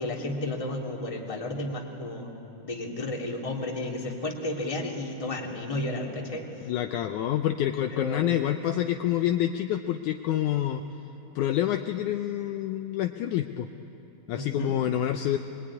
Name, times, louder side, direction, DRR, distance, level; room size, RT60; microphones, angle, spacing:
voice 1, 0.0-2.3 2.6-6.7 7.9-8.3 14.3-14.8, left 1 dB, 10° left, 0 dB, 1.8 m, -32 dB
voice 2, 6.7-10.8 11.4-13.7 14.3-15.4, left 12 dB, 75° left, 6 dB, 1.9 m, -27 dB
23.5 x 22.5 x 9.7 m, 3.0 s
omnidirectional pair, 4.0 m